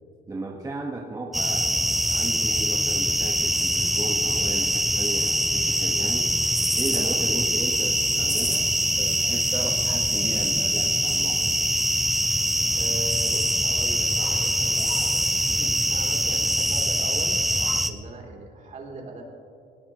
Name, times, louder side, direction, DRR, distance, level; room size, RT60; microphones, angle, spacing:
voice 1, 0.3-6.3 6.7-11.6, right 2 dB, 20° right, -2 dB, 1.4 m, -35 dB
sound 1, 1.3-17.9, equal, ahead, 0.8 m, -23 dB
voice 2, 12.7-15.2 15.5-17.4 17.8-19.2, right 3 dB, 45° right, 0 dB, 3.3 m, -40 dB
21.0 x 18.5 x 3.1 m, 2.5 s
cardioid pair, 110°, 17 cm